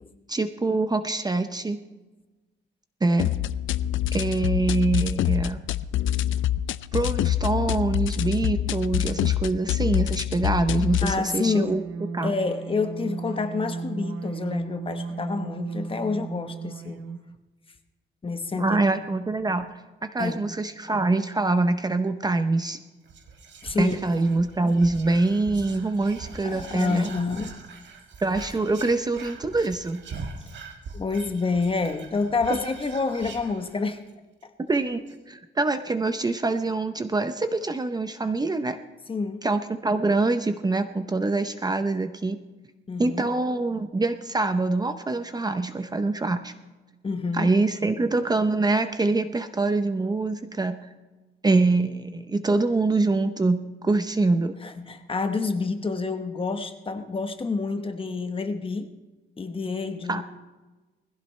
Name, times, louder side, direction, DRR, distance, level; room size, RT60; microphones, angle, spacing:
voice 1, 0.3-1.8 3.0-3.3 4.1-5.6 6.9-11.8 12.1-12.3 18.6-22.8 23.8-27.1 28.2-30.0 34.6-38.8 39.4-42.4 43.0-46.5 47.3-50.8 51.4-54.6 60.1-60.2, right 3 dB, 20° right, 9 dB, 0.7 m, -25 dB
sound 1, 3.2-11.2, left 12 dB, 80° left, 0.5 m, -26 dB
sound 2, 10.6-17.4, right 4 dB, 90° right, 1.0 m, -35 dB
voice 2, 11.0-11.8 12.2-17.0 18.2-18.8 20.2-20.4 23.6-23.9 26.4-27.5 30.9-34.0 34.4-34.5 39.1-39.4 42.9-43.3 47.0-47.5 54.6-58.9 59.4-60.2, left 4 dB, 25° left, 7 dB, 1.1 m, -28 dB
Whispering, 23.0-34.1 34.4-34.5 34.7-35.1, right 4 dB, 65° right, 1.8 m, -42 dB
21.0 x 15.5 x 3.2 m, 1.2 s
cardioid pair, 135°, 20 cm